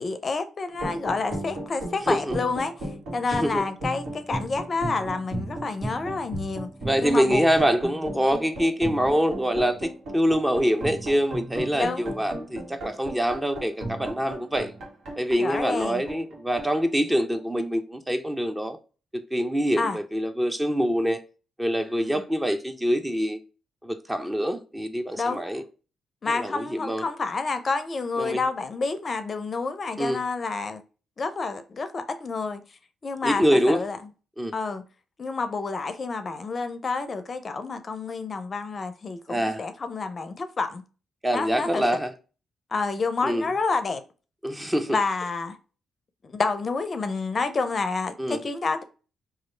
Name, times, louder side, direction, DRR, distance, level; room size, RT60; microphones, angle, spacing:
voice 1, 0.0-2.9 3.1-6.7 7.0-7.5 11.7-12.1 15.4-16.0 19.8-20.0 25.2-25.5 26.2-30.8 31.2-32.6 33.0-34.0 34.5-34.8 35.2-40.8 41.3-41.8 42.7-44.0 44.9-45.6 46.2-48.8, left 4 dB, 45° left, 0.5 m, -29 dB
sound 1, 0.7-17.6, right 1 dB, 75° right, 1.4 m, -36 dB
voice 2, 6.8-14.7 15.2-18.8 19.1-21.2 21.6-23.4 23.8-25.6 26.2-27.1 28.2-28.4 30.0-30.2 33.2-33.8 34.4-34.5 39.3-39.6 41.2-42.1 43.2-43.5 44.4-45.0 48.2-48.4, equal, 15° right, 0.6 m, -25 dB
3.0 x 2.4 x 4.3 m
supercardioid pair, 55°, 0 cm